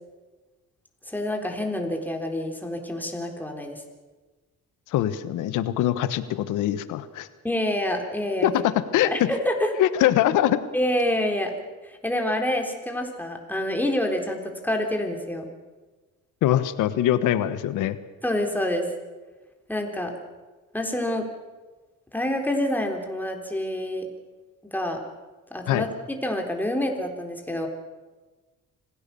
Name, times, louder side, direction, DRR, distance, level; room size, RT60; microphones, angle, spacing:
voice 1, 1.1-3.8 7.4-8.5 9.0-9.7 10.7-11.5 11.8-15.5 18.2-18.9 19.7-20.1 20.7-21.3 22.1-24.1 24.7-25.0 25.5-27.7, left 1 dB, 5° left, 2 dB, 3.9 m, -27 dB
voice 2, 4.9-7.3 8.4-9.3 9.8-10.6 16.4-18.0 25.7-25.9, left 12 dB, 90° left, 14 dB, 1.3 m, -23 dB
26.0 x 16.5 x 7.0 m, 1.3 s
cardioid pair, 90°, 30 cm